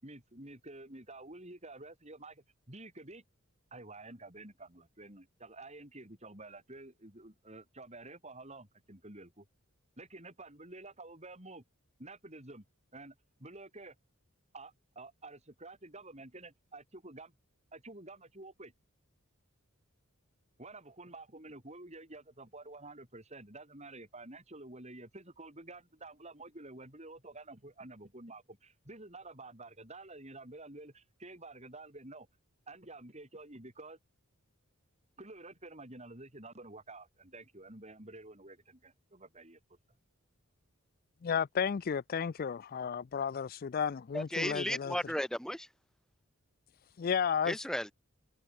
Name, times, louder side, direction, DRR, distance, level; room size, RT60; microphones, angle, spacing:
voice 1, 0.0-3.2 3.7-9.5 10.0-11.6 12.0-12.6 12.9-13.1 13.4-13.9 14.5-17.3 17.7-18.7 20.6-32.3 32.7-34.0 35.2-39.8, right 2 dB, 30° right, 7.7 m, -50 dB
voice 2, 41.2-45.0 47.0-47.5, left 7 dB, 45° left, 0.4 m, -33 dB
voice 3, 44.1-45.7 47.4-47.9, equal, 5° left, 1.4 m, -34 dB
head